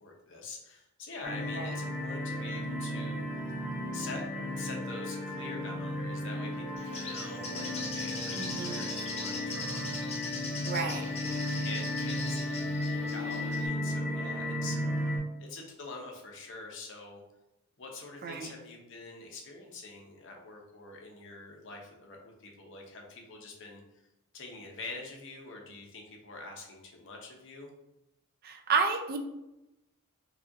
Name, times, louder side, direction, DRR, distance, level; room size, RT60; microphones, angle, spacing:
voice 1, 0.0-3.2 3.9-4.2 4.6-10.2 10.7-15.1 15.4-17.2 17.8-23.8 24.3-27.7, left 3 dB, 60° left, 1 dB, 0.8 m, -45 dB
sound 1, 1.2-15.2, left 1 dB, 10° right, 0.9 m, -34 dB
Bird, 6.8-13.7, left 3 dB, 30° left, 0.5 m, -41 dB
voice 2, 8.3-8.8 10.7-11.1 18.2-18.5 28.4-29.2, right 5 dB, 45° right, 4 dB, 0.4 m, -31 dB
4.8 x 2.4 x 2.8 m, 0.92 s
head